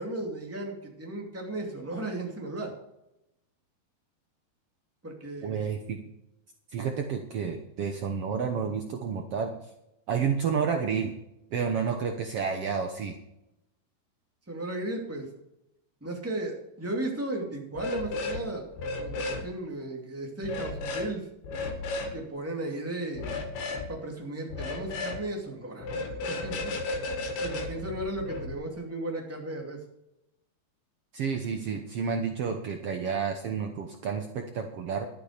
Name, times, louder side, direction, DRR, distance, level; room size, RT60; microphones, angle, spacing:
voice 1, 0.0-2.7 5.0-5.5 14.5-15.3 16.0-18.7 19.0-21.3 22.1-23.3 23.9-26.7 27.4-29.8, right 2 dB, 5° right, 1 dB, 1.6 m, -35 dB
voice 2, 5.4-6.0 6.7-9.5 10.1-11.1 11.5-13.2 31.1-35.1, right 6 dB, 85° right, 4 dB, 1.3 m, -30 dB
sound 1, 17.7-18.4 18.7-19.4 20.4-21.1 21.4-22.1 23.1-23.9 24.5-25.2 25.8-28.5, left 2 dB, 80° left, 3.6 m, -33 dB
11.5 x 10.5 x 5.1 m, 0.85 s
omnidirectional pair, 4.2 m